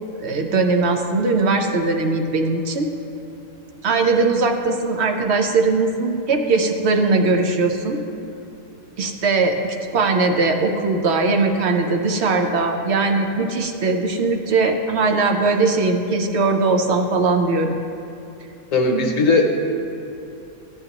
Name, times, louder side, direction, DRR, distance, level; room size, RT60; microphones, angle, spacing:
voice 1, 0.2-2.9 3.8-8.0 9.0-17.8, right 3 dB, 55° right, 4 dB, 0.8 m, -20 dB
voice 2, 18.7-19.5, left 3 dB, 55° left, 1 dB, 1.2 m, -17 dB
14.5 x 8.0 x 2.9 m, 2.9 s
omnidirectional pair, 1.7 m